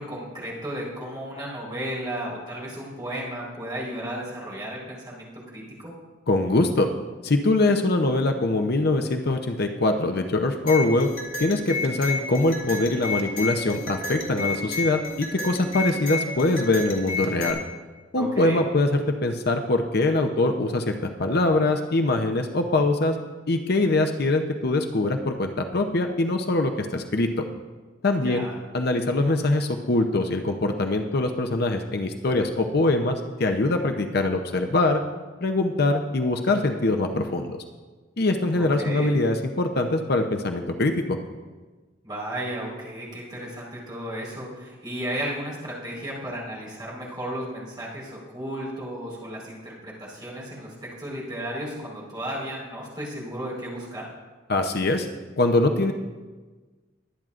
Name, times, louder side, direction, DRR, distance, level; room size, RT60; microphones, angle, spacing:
voice 1, 0.0-5.9 18.1-18.6 28.1-28.5 38.5-39.1 42.0-54.1, right 1 dB, 25° right, -6 dB, 4.3 m, -34 dB
voice 2, 6.3-6.9 7.2-11.1 11.4-17.6 18.1-23.2 23.5-27.5 28.0-28.5 28.7-35.0 35.4-37.5 38.2-41.2 54.5-55.1 55.4-55.9, left 2 dB, 55° left, 5 dB, 0.7 m, -23 dB
sound 1, 10.7-17.5, left 3 dB, 80° left, 3.2 m, -31 dB
22.5 x 9.1 x 2.5 m, 1.3 s
head